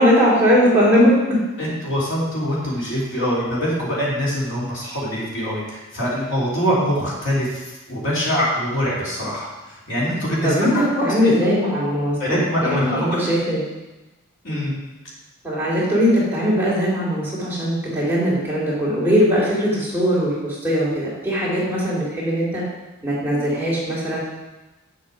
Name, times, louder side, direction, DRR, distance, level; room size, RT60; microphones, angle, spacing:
voice 1, 0.0-1.4 10.4-13.6 14.5-14.7 15.4-22.6 23.0-24.2, equal, 10° right, -8 dB, 3.1 m, -20 dB
voice 2, 1.6-11.3 12.2-13.3 14.4-14.7, equal, 60° left, -6 dB, 3.2 m, -24 dB
9.2 x 6.8 x 4.9 m, 1.0 s
head